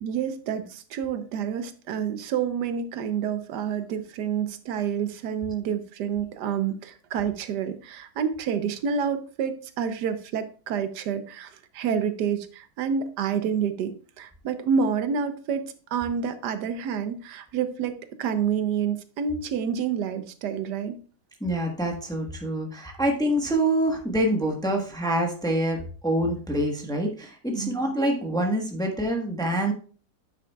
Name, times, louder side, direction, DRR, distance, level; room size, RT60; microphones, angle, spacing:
voice 1, 0.0-21.0 27.5-27.8, right 7 dB, 85° right, 10 dB, 1.3 m, -28 dB
voice 2, 21.4-29.7, right 1 dB, 5° left, 2 dB, 0.9 m, -26 dB
9.0 x 7.1 x 2.3 m, 0.39 s
omnidirectional pair, 1.8 m